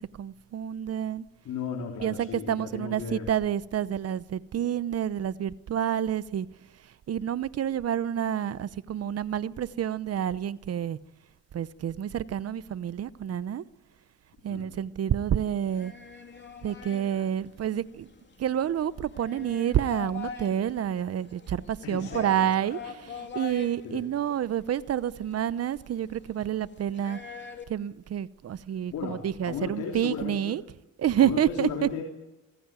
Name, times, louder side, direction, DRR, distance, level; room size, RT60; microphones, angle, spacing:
voice 1, 0.0-1.2 2.0-6.5 7.1-11.0 11.5-13.6 14.4-15.9 16.6-18.1 18.4-27.2 27.7-30.6 31.0-31.9, right 10 dB, 55° right, 0.9 m, -29 dB
voice 2, 1.4-3.3 14.5-14.8 21.8-22.8 23.8-24.0 28.9-30.6 31.2-32.0, left 6 dB, 75° left, 3.5 m, -36 dB
sound 1, 15.6-27.6, left 6 dB, 35° left, 2.9 m, -44 dB
24.5 x 15.5 x 9.0 m
cardioid pair, 90°, 30 cm